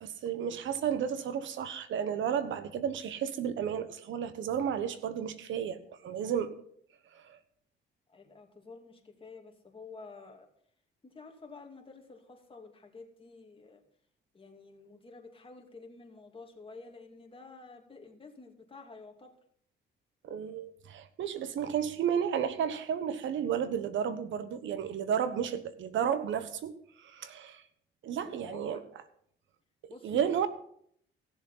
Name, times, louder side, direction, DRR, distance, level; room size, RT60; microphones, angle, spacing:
voice 1, 0.0-5.8 6.0-6.5 7.1-7.4 20.2-26.7 27.0-27.6 28.0-28.8 29.8-30.5, right 8 dB, 75° right, 12 dB, 1.2 m, -32 dB
voice 2, 8.1-10.5 11.0-13.8 14.3-19.3 28.2-28.8 29.9-30.5, left 3 dB, 25° left, 2 dB, 2.6 m, -50 dB
15.5 x 7.1 x 5.6 m, 0.66 s
cardioid pair, 90°, 20 cm